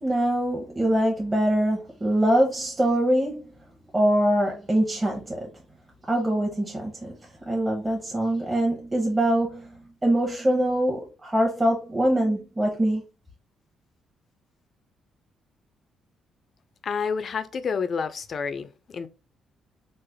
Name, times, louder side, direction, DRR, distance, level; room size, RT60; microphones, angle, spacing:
voice 1, 0.0-3.4 3.9-5.5 6.1-7.1 7.5-13.0, right 1 dB, 20° right, 0.8 m, -23 dB
voice 2, 16.8-19.1, left 5 dB, 50° left, 0.4 m, -29 dB
3.2 x 2.1 x 3.4 m
cardioid pair, 90°, 0 cm